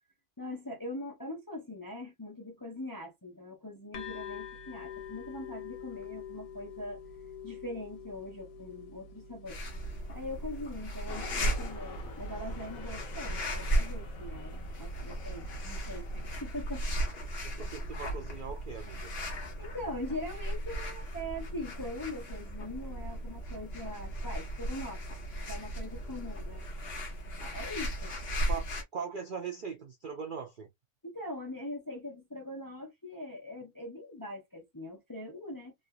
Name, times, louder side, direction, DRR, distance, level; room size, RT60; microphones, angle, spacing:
voice 1, 0.4-7.0 7.4-9.6 10.1-16.9 19.6-25.0 25.5-26.6 27.4-28.1 31.0-35.7, left 1 dB, 25° left, 0.4 m, -42 dB
sound 1, 3.9-11.4, left 7 dB, 85° left, 1.4 m, -46 dB
sound 2, 9.5-28.8, right 1 dB, 45° left, 1.1 m, -36 dB
sound 3, 11.1-16.4, left 2 dB, 65° left, 1.4 m, -47 dB
voice 2, 17.4-19.1 28.5-28.6 28.9-30.7, right 6 dB, 70° right, 0.5 m, -40 dB
3.3 x 2.4 x 2.6 m
omnidirectional pair, 1.6 m